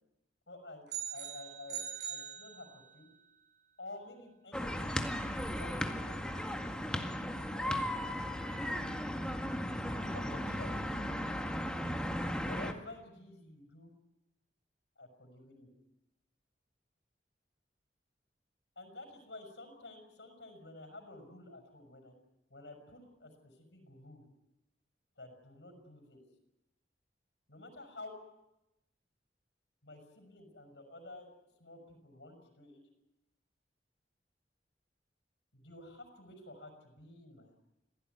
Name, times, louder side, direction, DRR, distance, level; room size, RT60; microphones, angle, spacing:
voice 1, 0.5-3.1 3.8-7.9 10.1-11.2 12.4-13.9 15.0-15.7 18.8-22.1 22.5-24.2 25.2-26.2 27.5-28.2 29.8-32.8 35.5-37.6, left 2 dB, 85° left, 4 dB, 5.7 m, -51 dB
sound 1, 0.9-3.1, right 9 dB, 70° right, 6.4 m, -42 dB
sound 2, 4.5-12.7, equal, 5° left, 1.9 m, -36 dB
26.5 x 17.0 x 9.3 m, 0.92 s
head